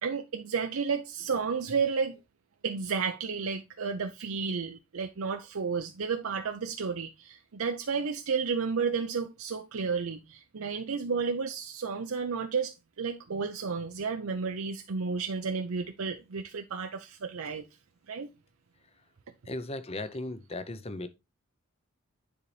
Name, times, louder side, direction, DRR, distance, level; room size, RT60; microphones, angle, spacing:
voice 1, 0.0-2.2 2.6-17.6 18.1-18.3, right 5 dB, 75° right, 0.6 m, -32 dB
voice 2, 19.5-21.1, left 2 dB, 30° left, 0.6 m, -36 dB
9.9 x 4.0 x 3.2 m
head